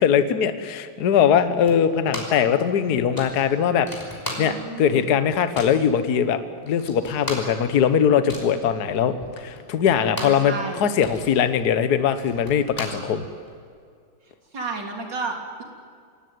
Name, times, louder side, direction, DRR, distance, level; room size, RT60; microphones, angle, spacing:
voice 1, 0.0-3.9 4.4-6.4 6.6-13.2, left 8 dB, 55° left, 11 dB, 1.5 m, -21 dB
sound 1, 1.7-2.5 2.8-2.9 3.1-4.8 5.1-5.8 6.4-6.5 6.7-10.5 10.8-13.6, left 1 dB, 10° left, 5.4 m, -36 dB
voice 2, 4.4-5.2 10.2-10.8 14.5-15.6, right 3 dB, 60° right, 2 dB, 3.8 m, -32 dB
26.5 x 18.0 x 9.4 m, 2.2 s
omnidirectional pair, 2.2 m